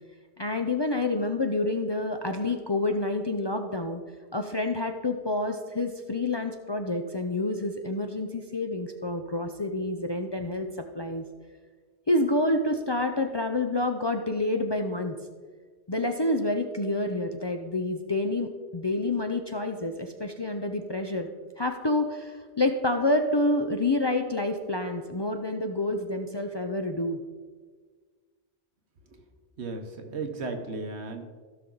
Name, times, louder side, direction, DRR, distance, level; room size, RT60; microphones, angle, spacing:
voice 1, 0.4-4.0 4.3-10.7 10.9-11.2 12.1-15.2 15.9-21.3 21.6-27.2, left 2 dB, 35° left, 5 dB, 0.5 m, -28 dB
voice 2, 29.6-31.2, right 3 dB, 80° right, 5 dB, 1.4 m, -35 dB
16.0 x 6.0 x 3.9 m, 1.5 s
omnidirectional pair, 1.1 m